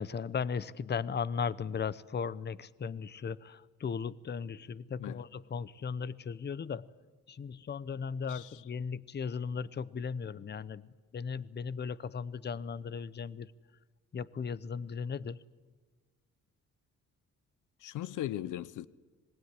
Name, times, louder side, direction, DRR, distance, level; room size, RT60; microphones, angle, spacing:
voice 1, 0.0-6.9 7.3-10.8 11.1-13.5 14.1-15.4, left 6 dB, 35° left, 0.9 m, -37 dB
voice 2, 8.3-8.6 17.8-18.9, left 13 dB, 85° left, 0.9 m, -38 dB
26.0 x 20.5 x 9.8 m
cardioid pair, 90°, 30 cm